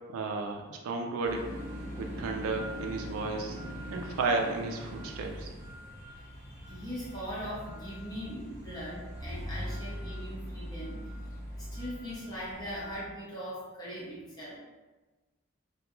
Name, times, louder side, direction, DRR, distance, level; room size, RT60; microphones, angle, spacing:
voice 1, 0.1-1.4 2.0-3.6 3.9-5.5, right 3 dB, 85° right, 2 dB, 0.3 m, -33 dB
sound 1, 1.2-13.0, equal, 15° right, 1.0 m, -41 dB
voice 2, 5.9-11.0 11.5-14.6, equal, 20° left, -8 dB, 0.8 m, -40 dB
2.2 x 2.2 x 3.0 m, 1.2 s
head